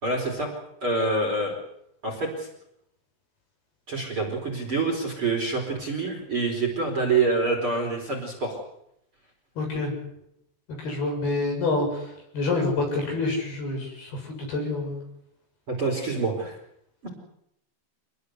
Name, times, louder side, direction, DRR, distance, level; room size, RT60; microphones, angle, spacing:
voice 1, 0.0-0.5 0.8-1.5 2.0-2.5 3.9-8.6 15.7-16.6 17.0-17.1, right 3 dB, 25° right, 2 dB, 4.9 m, -26 dB
voice 2, 9.6-9.9 10.8-15.0, left 3 dB, 50° left, 2 dB, 9.1 m, -27 dB
27.0 x 20.5 x 8.2 m, 0.77 s
omnidirectional pair, 5.8 m